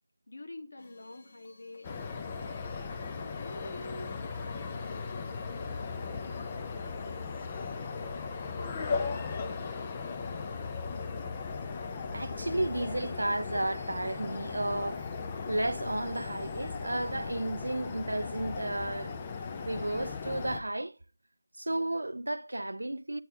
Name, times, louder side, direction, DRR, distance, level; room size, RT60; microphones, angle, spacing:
voice 1, 0.3-2.5 3.1-7.5 8.0-10.5, left 1 dB, 75° left, 1.3 m, -49 dB
sound 1, 0.8-17.1, left 2 dB, 45° left, 1.2 m, -57 dB
sound 2, 1.8-20.6, left 5 dB, 20° left, 0.6 m, -37 dB
voice 2, 12.1-15.0 15.5-19.2 19.6-20.9 21.6-23.2, right 1 dB, 90° right, 0.4 m, -33 dB
8.4 x 4.2 x 3.6 m
figure-of-eight pair, 165°, 0 cm